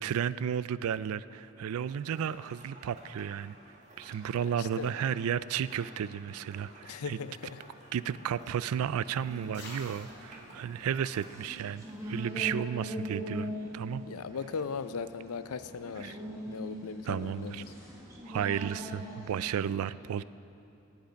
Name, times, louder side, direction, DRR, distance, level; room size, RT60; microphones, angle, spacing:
voice 1, 0.0-3.5 4.0-7.2 7.9-14.0 16.0-16.1 17.1-17.6 18.2-20.2, right 8 dB, 70° right, 17 dB, 0.3 m, -33 dB
sound 1, 1.8-11.7, right 1 dB, 30° right, 1.6 m, -54 dB
voice 2, 4.6-4.9 6.8-7.6 14.1-16.2 16.5-17.7, left 5 dB, 75° left, 12 dB, 0.5 m, -38 dB
sound 2, 7.2-12.3, left 2 dB, 50° left, 3.3 m, -54 dB
sound 3, 9.2-19.4, equal, 15° right, 1.5 m, -42 dB
17.0 x 8.2 x 5.2 m, 2.7 s
head